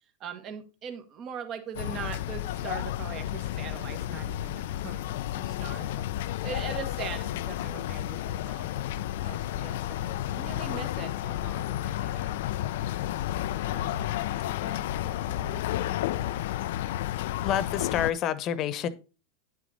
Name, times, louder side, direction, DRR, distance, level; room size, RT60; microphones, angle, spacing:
voice 1, 0.2-13.2 13.6-14.1 14.6-15.6 15.9-16.3, right 7 dB, 40° right, 8 dB, 1.5 m, -42 dB
sound 1, 1.7-18.1, left 13 dB, 70° left, 0.4 m, -32 dB
voice 2, 17.4-18.9, left 10 dB, 45° left, 15 dB, 1.0 m, -28 dB
10.0 x 6.2 x 4.1 m, 0.32 s
hypercardioid pair, 100°, 0 cm